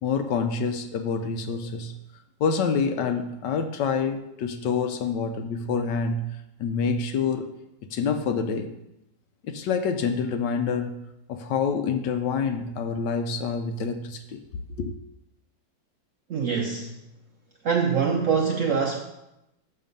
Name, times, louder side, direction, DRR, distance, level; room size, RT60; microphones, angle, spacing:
voice 1, 0.0-2.0 2.4-6.3 6.6-7.5 7.9-8.7 9.5-10.9 11.3-14.4 14.8-14.9, left 5 dB, 70° left, 8 dB, 1.2 m, -27 dB
voice 2, 16.3-16.9 17.6-19.0, right 6 dB, 70° right, 2 dB, 0.7 m, -24 dB
6.7 x 6.5 x 5.3 m, 0.89 s
omnidirectional pair, 2.1 m